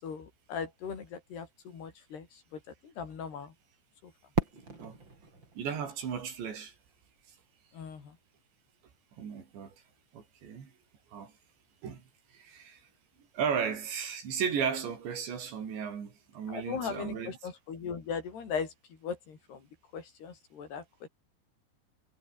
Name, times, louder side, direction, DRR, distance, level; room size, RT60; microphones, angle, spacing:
voice 1, 0.0-2.3 2.5-3.5 4.0-4.1 7.7-8.2 16.5-18.7 19.0-19.6 19.9-21.1, left 6 dB, 65° left, 6.3 m, -39 dB
Fireworks, 4.4-7.2, right 3 dB, 25° right, 6.2 m, -37 dB
voice 2, 5.6-6.7 9.2-9.8 10.1-10.7 11.1-11.3 11.8-12.0 12.3-12.8 13.3-17.3, right 7 dB, 75° right, 6.4 m, -35 dB
omnidirectional pair, 5.2 m